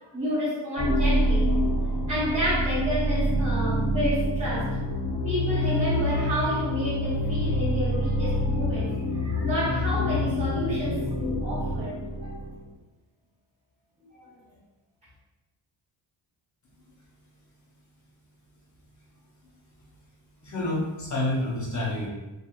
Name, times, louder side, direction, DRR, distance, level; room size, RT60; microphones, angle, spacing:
voice 1, 0.1-1.5 2.1-4.8 5.2-12.4 14.1-14.3, equal, 15° right, -11 dB, 0.9 m, -30 dB
sound 1, 0.8-12.6, equal, 65° right, 1.0 m, -26 dB
voice 2, 20.4-22.1, left 1 dB, 40° left, -4 dB, 0.6 m, -28 dB
2.9 x 2.5 x 2.2 m, 1.0 s
wide cardioid pair, 130°, 46 cm